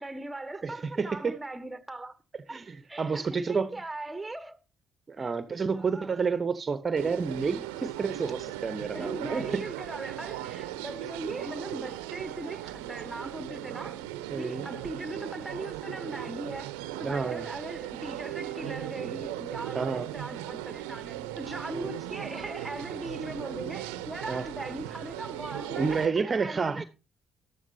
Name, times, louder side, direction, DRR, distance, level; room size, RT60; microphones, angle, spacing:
voice 1, 0.0-2.2 2.5-2.6 2.9-4.6 5.2-5.3 5.7-6.2 8.9-14.0 14.4-16.7 17.0-26.8, right 2 dB, 10° right, 1.5 m, -39 dB
voice 2, 0.6-1.4 2.5-3.7 5.1-9.6 14.3-14.7 17.0-17.5 19.7-20.1 21.7-21.9 24.3-24.5 25.7-26.8, right 5 dB, 35° right, 1.0 m, -30 dB
sound 1, 7.0-26.1, right 13 dB, 75° right, 0.8 m, -38 dB
13.5 x 12.5 x 2.8 m
hypercardioid pair, 45°, 0 cm